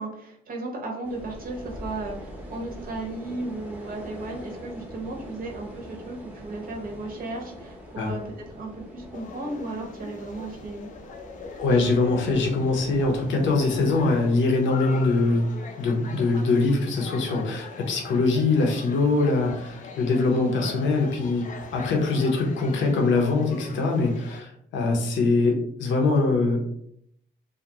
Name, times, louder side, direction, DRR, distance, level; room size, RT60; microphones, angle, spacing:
voice 1, 0.0-10.9 20.0-20.3, right 2 dB, 45° right, 0 dB, 0.6 m, -35 dB
sound 1, 1.0-14.3, equal, 5° right, 0.6 m, -43 dB
sound 2, 9.1-24.4, left 4 dB, 40° left, 0.4 m, -42 dB
voice 2, 11.4-15.5 15.8-21.5 21.7-26.6, left 3 dB, 70° left, 2 dB, 0.7 m, -23 dB
2.3 x 2.1 x 2.8 m, 0.70 s
cardioid pair, 90°, 20 cm